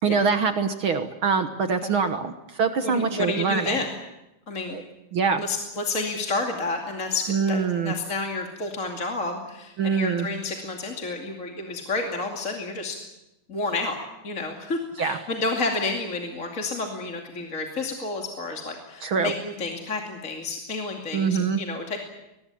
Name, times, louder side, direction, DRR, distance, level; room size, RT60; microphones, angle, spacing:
voice 1, 0.0-3.8 4.7-4.8 5.1-5.4 7.3-7.9 9.8-10.3 15.0-15.2 19.0-19.3 21.1-21.6, right 5 dB, 55° right, 8 dB, 1.6 m, -24 dB
voice 2, 2.8-3.9 4.5-4.8 5.4-13.0 13.5-13.9 14.2-22.0, left 3 dB, 25° left, 1 dB, 2.5 m, -30 dB
22.5 x 20.5 x 8.5 m, 0.91 s
omnidirectional pair, 3.5 m